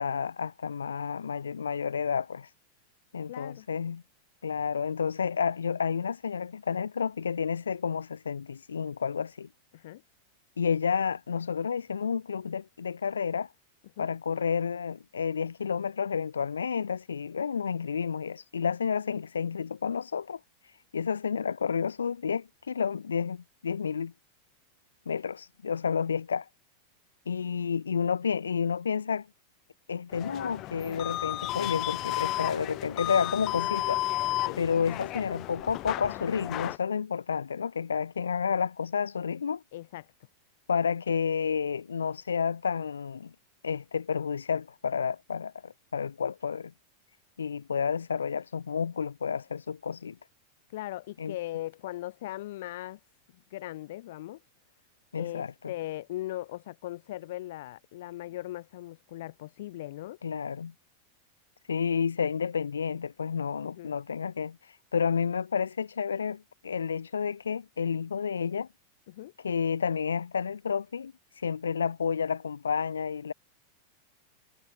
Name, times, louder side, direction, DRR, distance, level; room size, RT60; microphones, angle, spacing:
voice 1, 0.0-2.5 3.1-4.0 4.4-9.5 10.6-13.5 14.0-20.4 20.9-24.1 25.1-26.5 27.3-29.3 29.9-34.0 34.6-39.6 40.7-43.3 43.6-46.7 47.4-50.2 51.2-51.4 55.1-55.7 60.2-60.7 61.7-64.6 64.9-68.7 69.4-71.1 71.4-73.3, left 6 dB, 70° left, 7.7 m, -30 dB
voice 2, 3.3-3.7 9.7-10.0 14.0-14.1 34.5-34.6 39.7-40.1 50.7-53.0 53.5-54.4 55.2-60.2 63.6-64.0 69.1-69.3, left 15 dB, 55° left, 5.9 m, -39 dB
sound 1, 30.1-36.8, left 17 dB, 35° left, 1.7 m, -33 dB
figure-of-eight pair, 90°, 0 cm